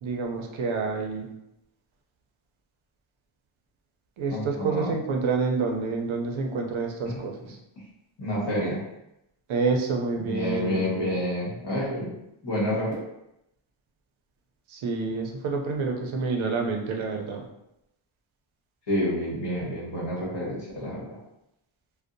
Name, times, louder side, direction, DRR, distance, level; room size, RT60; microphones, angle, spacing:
voice 1, 0.0-1.3 4.2-7.6 9.5-11.2 14.7-17.4, right 4 dB, 70° right, 2 dB, 0.5 m, -28 dB
voice 2, 4.3-4.9 7.0-7.2 8.2-8.8 10.2-12.1 12.4-12.9 18.9-21.0, equal, 55° left, -6 dB, 1.2 m, -28 dB
2.5 x 2.1 x 2.5 m, 0.85 s
wide cardioid pair, 150°, 49 cm